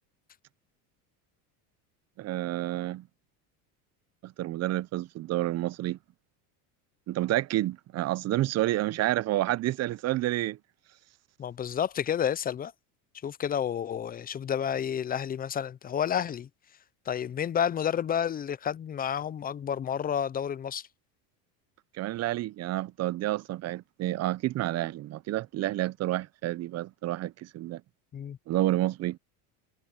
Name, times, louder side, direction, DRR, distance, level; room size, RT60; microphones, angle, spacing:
voice 1, 2.2-3.0 4.2-6.0 7.1-10.6 22.0-27.8 28.5-29.2, right 15 dB, 35° right, 0.5 m, -29 dB
voice 2, 11.4-12.7 13.2-16.5 17.1-20.9 28.1-28.4, left 8 dB, 20° left, 0.4 m, -30 dB
supercardioid pair, 110°, 46 cm